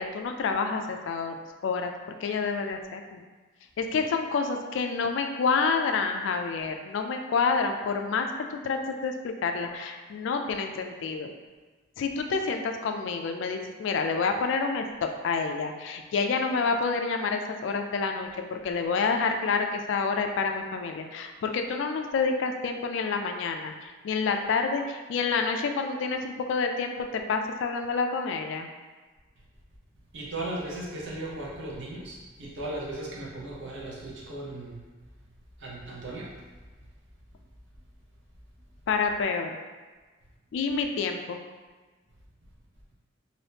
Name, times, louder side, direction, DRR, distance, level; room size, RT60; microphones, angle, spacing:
voice 1, 0.0-1.4 1.6-1.9 2.2-3.2 3.8-11.3 12.0-28.7 38.9-39.5 40.5-41.4, left 4 dB, 65° left, 5 dB, 0.3 m, -28 dB
voice 2, 30.1-34.8 35.6-36.3, right 1 dB, 65° right, -4 dB, 0.8 m, -37 dB
2.7 x 2.6 x 3.4 m, 1.3 s
head